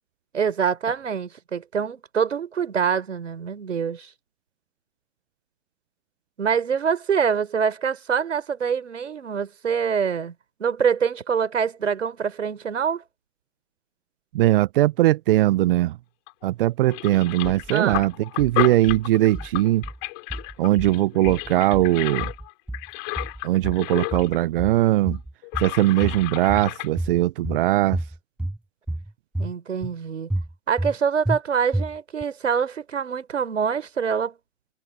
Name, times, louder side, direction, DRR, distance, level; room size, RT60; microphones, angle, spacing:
voice 1, 0.3-4.1 6.4-10.3 10.6-13.0 17.7-18.1 29.4-30.3 30.7-34.3, right 7 dB, 70° right, 4.5 m, -25 dB
voice 2, 14.3-16.0 16.4-18.1 18.4-19.8 20.6-22.3 23.4-25.2 25.6-28.0, right 15 dB, 45° right, 1.2 m, -20 dB
sound 1, 16.3-16.5 16.8-24.4 24.7-24.8 25.4-26.9, left 38 dB, 35° left, 6.1 m, -32 dB
sound 2, 17.4-18.1 18.4-19.0 19.3-20.0 20.3-21.0 21.2-21.9 22.2-22.9 23.2-23.8 24.1-24.8 25.1-25.7 26.0-26.7 27.0-27.6 27.9-28.6 28.9-29.5 29.8-29.9 30.3-30.9 31.2-31.4 31.7-32.2, right 1 dB, 5° right, 6.2 m, -30 dB
figure-of-eight pair, 115°, 38 cm